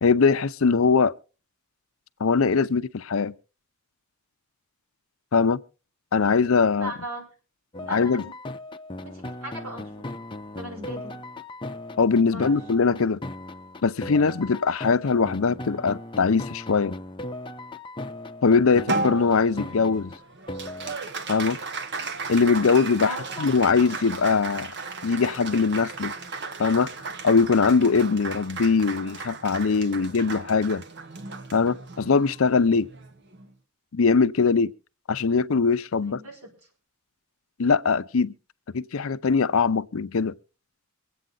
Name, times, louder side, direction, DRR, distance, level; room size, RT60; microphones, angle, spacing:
voice 1, 0.0-1.1 2.2-3.3 5.3-5.6 6.1-6.9 7.9-8.2 12.0-13.2 13.8-16.9 18.4-20.1 21.3-21.6 22.3-24.7 25.0-26.1 26.6-26.9 27.2-30.8 31.5-32.9 33.9-34.7 35.1-36.2 37.6-38.3 38.7-40.3, left 5 dB, 65° left, 0.6 m, -21 dB
voice 2, 6.7-7.3 7.8-8.3 9.0-10.2 10.6-11.2 12.3-12.6 23.0-23.5 36.0-36.5, right 1 dB, 85° right, 5.7 m, -38 dB
sound 1, 7.7-21.0, left 1 dB, 25° left, 0.6 m, -38 dB
Applause, 18.9-33.5, right 3 dB, 55° right, 1.1 m, -35 dB
24.0 x 8.6 x 3.9 m
head